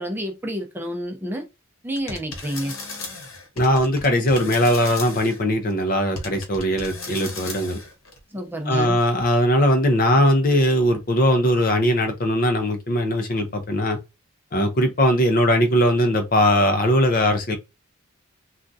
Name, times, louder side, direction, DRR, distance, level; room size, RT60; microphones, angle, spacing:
voice 1, 0.0-1.5 1.8-2.7 8.3-9.0, equal, 10° right, 0.6 m, -29 dB
sound 1, 1.9-5.4 6.2-8.2, left 3 dB, 70° left, 1.0 m, -36 dB
voice 2, 3.6-7.8 8.7-14.0 14.5-17.6, equal, 40° left, 0.6 m, -20 dB
3.5 x 2.3 x 2.6 m
head